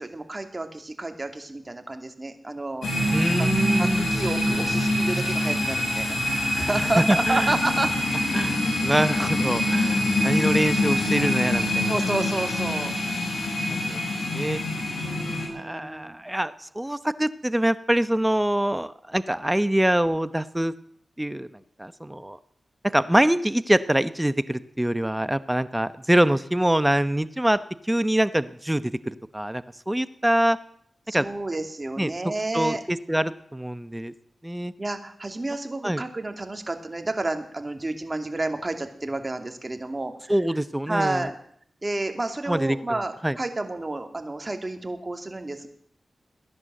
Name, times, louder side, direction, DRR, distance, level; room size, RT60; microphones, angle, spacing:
voice 1, 0.0-2.9 3.4-3.5 3.8-7.9 11.9-12.9 14.9-16.2 31.1-32.8 34.8-40.3 40.9-41.3 41.8-45.7, right 2 dB, 30° right, 6 dB, 2.7 m, -30 dB
sound 1, 2.8-15.5, left 1 dB, 85° left, 6.1 m, -25 dB
voice 2, 3.1-4.1 7.0-7.6 8.3-11.9 13.7-14.0 14.3-14.6 15.5-20.7 21.2-21.5 21.8-22.4 22.9-30.6 31.1-31.3 32.0-32.1 32.5-34.1 34.4-34.7 35.8-36.0 40.3-41.3 42.5-43.4, right 1 dB, 10° right, 14 dB, 0.9 m, -24 dB
17.0 x 11.0 x 7.7 m, 0.64 s
cardioid pair, 45°, 0 cm